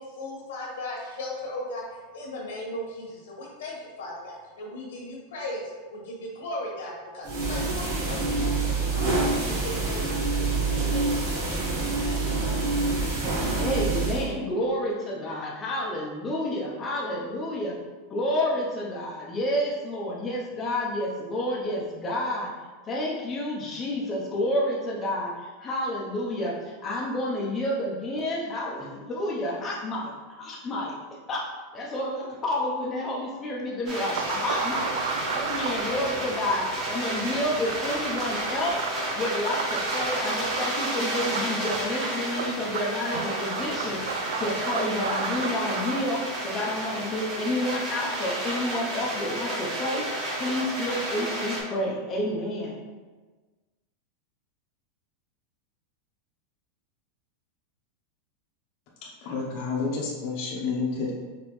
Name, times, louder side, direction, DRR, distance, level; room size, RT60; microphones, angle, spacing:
voice 1, 0.0-1.8 2.1-12.8, left 1 dB, 80° left, -2 dB, 1.4 m, -37 dB
sound 1, 7.2-14.3, right 3 dB, 55° right, 1.4 m, -26 dB
voice 2, 13.6-17.8 18.1-22.5 22.9-30.1 30.4-31.4 31.7-38.8 39.1-50.1 50.4-52.7, left 1 dB, 20° left, -4 dB, 0.7 m, -30 dB
sound 2, 33.9-51.6, right 1 dB, 30° right, 1.4 m, -32 dB
sound 3, 34.1-46.0, right 6 dB, 85° right, 0.4 m, -34 dB
voice 3, 59.2-61.1, left 4 dB, 50° left, -3 dB, 0.9 m, -29 dB
5.1 x 3.0 x 3.1 m, 1.3 s
supercardioid pair, 145°, 0 cm